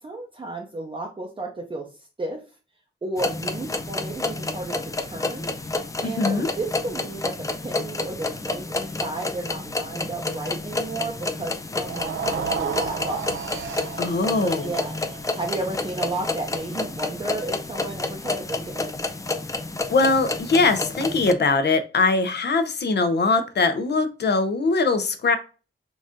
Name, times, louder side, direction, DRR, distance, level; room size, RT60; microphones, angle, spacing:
voice 1, 0.0-2.4 3.0-5.5 6.0-13.2 14.4-15.0 15.3-18.9, right 2 dB, 25° right, 0 dB, 0.6 m, -33 dB
sound 1, 3.2-21.3, left 3 dB, 15° left, 0.3 m, -30 dB
voice 2, 6.0-6.5 14.0-14.7 19.9-25.4, left 3 dB, 60° left, 9 dB, 0.6 m, -21 dB
sound 2, 11.7-18.0, right 6 dB, 90° right, 0.4 m, -34 dB
4.0 x 2.5 x 3.5 m, 0.33 s
wide cardioid pair, 175°, 20 cm